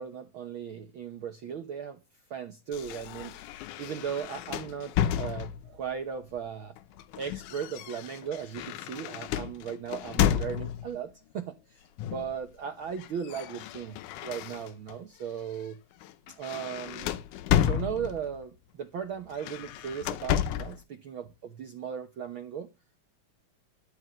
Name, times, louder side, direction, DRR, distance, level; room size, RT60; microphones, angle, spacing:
voice 1, 0.0-2.0 2.3-3.4 3.8-6.7 7.1-14.0 14.2-15.8 16.4-17.2 17.6-22.7, right 7 dB, 70° right, 1.2 m, -37 dB
sound 1, 2.7-5.8 6.8-11.0 12.0-12.4 12.7-15.0 15.4-15.6 16.0-18.4 19.3-20.8, left 10 dB, 85° left, 2.3 m, -32 dB
13.0 x 5.4 x 7.8 m
omnidirectional pair, 3.6 m